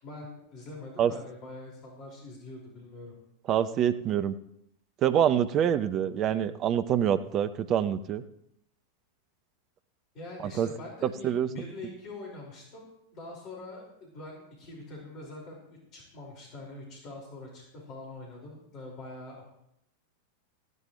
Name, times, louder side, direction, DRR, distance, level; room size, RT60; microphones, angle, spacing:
voice 1, 0.0-3.1 10.1-19.5, left 2 dB, 35° left, -1 dB, 5.5 m, -44 dB
voice 2, 3.5-4.3 5.0-8.2 10.6-10.7 11.0-11.5, right 9 dB, 35° right, 12 dB, 0.8 m, -26 dB
16.5 x 15.5 x 3.3 m, 0.78 s
figure-of-eight pair, 90°, 0 cm